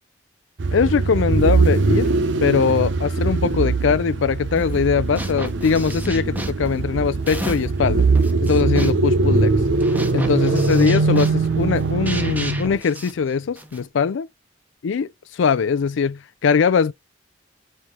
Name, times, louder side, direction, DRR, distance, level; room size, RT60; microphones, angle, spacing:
sound 1, 0.6-12.8, right 3 dB, 65° right, 0.7 m, -21 dB
voice 1, 0.7-2.1 2.4-8.0 8.4-9.5 10.1-14.3 14.8-16.9, left 6 dB, 75° left, 0.4 m, -21 dB
sound 2, 4.6-4.9 5.2-7.8 8.1-13.9, right 1 dB, 10° right, 0.6 m, -34 dB
4.3 x 3.1 x 3.5 m
head